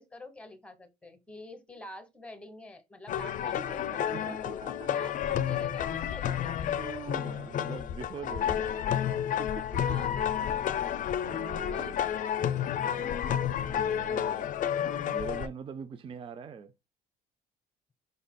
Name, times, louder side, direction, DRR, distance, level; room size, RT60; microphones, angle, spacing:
voice 1, 0.0-4.4 4.9-6.8 8.1-9.0 9.7-10.8 11.7-12.6, left 1 dB, 5° left, 1.1 m, -48 dB
sound 1, 3.1-15.5, left 9 dB, 50° left, 0.5 m, -31 dB
voice 2, 4.1-5.1 6.8-8.7 9.4-10.0 11.2-12.0 12.9-14.5 15.1-16.7, right 6 dB, 30° right, 0.4 m, -43 dB
5.2 x 4.0 x 2.2 m
cardioid pair, 110°, 17 cm